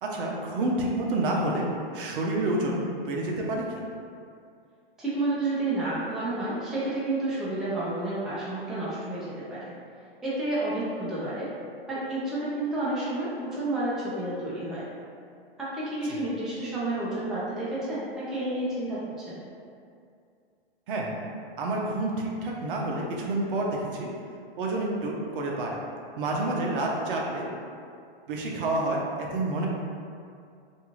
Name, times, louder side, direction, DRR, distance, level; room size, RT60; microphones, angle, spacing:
voice 1, 0.0-1.7 1.9-3.8 16.0-16.2 20.9-21.1 21.6-24.1 24.6-25.8 26.2-27.5 28.3-29.7, right 2 dB, 60° right, -1 dB, 0.6 m, -29 dB
voice 2, 5.0-9.6 10.2-11.5 11.9-14.9 15.6-19.4, right 2 dB, ahead, -10 dB, 0.4 m, -30 dB
2.5 x 2.3 x 3.0 m, 2.4 s
hypercardioid pair, 125°, 30 cm